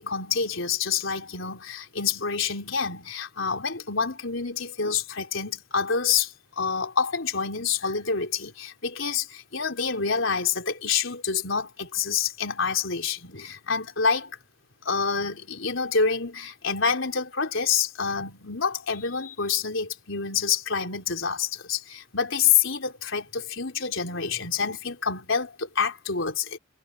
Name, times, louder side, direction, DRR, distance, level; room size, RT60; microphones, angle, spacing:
voice 1, 0.0-14.3 14.8-26.6, left 6 dB, 75° left, 4.0 m, -27 dB
head